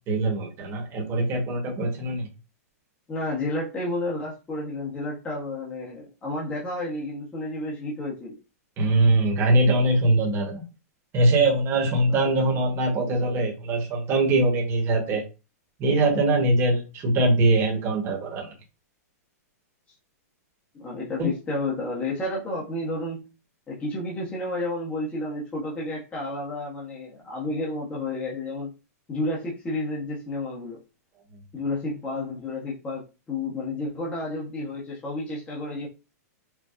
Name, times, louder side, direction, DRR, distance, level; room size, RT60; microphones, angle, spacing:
voice 1, 0.1-2.3 8.8-10.6 11.1-15.2 15.8-18.5 21.2-21.3, right 2 dB, 30° right, 0 dB, 1.2 m, -22 dB
voice 2, 3.1-8.3 12.1-12.6 20.7-23.2 23.7-28.7 29.1-30.8 31.5-35.9, left 2 dB, 15° left, -4 dB, 1.0 m, -31 dB
4.6 x 2.3 x 2.5 m, 0.30 s
hypercardioid pair, 140°, 9 cm